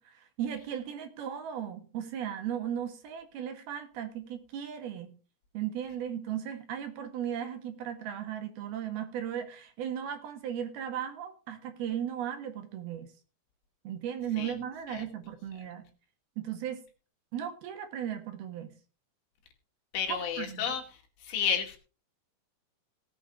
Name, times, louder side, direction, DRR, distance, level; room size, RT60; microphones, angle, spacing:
voice 1, 0.0-5.1 5.5-13.1 13.8-15.9 16.4-16.8 17.3-18.7 20.1-20.6, right 9 dB, 65° right, 6 dB, 3.2 m, -36 dB
voice 2, 19.9-20.8 21.2-21.8, left 7 dB, 75° left, 2 dB, 4.7 m, -31 dB
17.5 x 8.6 x 3.7 m, 0.35 s
omnidirectional pair, 5.2 m